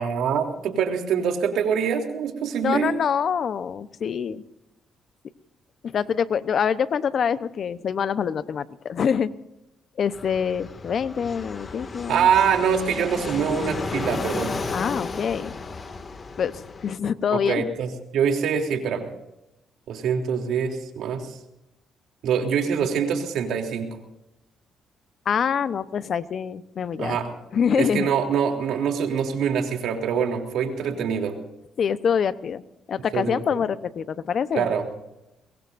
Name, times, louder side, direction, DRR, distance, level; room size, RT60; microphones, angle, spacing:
voice 1, 0.0-2.9 12.1-14.6 17.3-19.1 19.9-21.3 22.2-23.9 27.0-27.3 27.7-31.4 33.1-33.4 34.5-35.0, right 7 dB, 80° right, 3 dB, 3.3 m, -24 dB
voice 2, 2.6-4.4 5.8-9.3 10.0-12.3 14.7-15.5 16.4-17.7 25.2-27.2 27.5-28.1 31.8-32.6 32.9-34.7, left 7 dB, 55° left, 14 dB, 0.9 m, -25 dB
Fixed-wing aircraft airplane, 10.1-16.9, left 3 dB, 35° left, 2.2 m, -33 dB
23.0 x 22.5 x 2.7 m, 0.89 s
cardioid pair, 90°, 0 cm